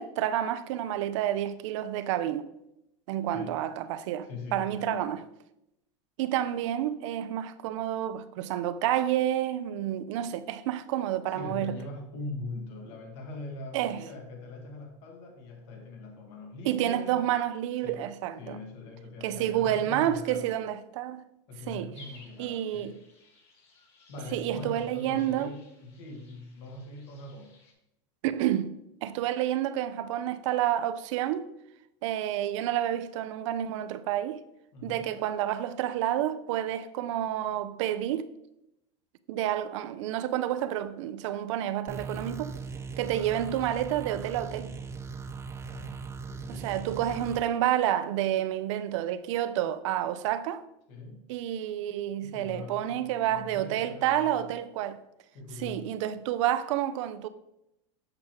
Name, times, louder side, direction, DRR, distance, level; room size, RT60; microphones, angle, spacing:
voice 1, 0.0-2.5 3.1-5.2 6.2-11.8 13.7-14.0 16.6-18.6 19.2-21.3 21.7-21.9 22.4-23.0 24.3-25.5 28.2-28.7 29.0-31.5 32.0-34.4 34.8-38.3 39.3-42.6 43.0-44.7 46.5-50.7 51.3-55.0 55.6-57.3, right 12 dB, 70° right, 0.5 m, -29 dB
voice 2, 4.2-5.1 11.3-17.3 17.8-18.1 18.4-20.6 21.5-23.0 24.1-27.5 34.7-35.1 45.6-46.0 46.3-46.8 50.9-51.2 52.2-54.5 55.3-56.0, left 2 dB, 65° left, 1.7 m, -42 dB
sound 1, 21.9-27.7, left 3 dB, 35° left, 1.8 m, -57 dB
sound 2, 41.9-47.4, right 5 dB, 15° right, 0.4 m, -39 dB
7.6 x 6.2 x 3.0 m
supercardioid pair, 120°, 16 cm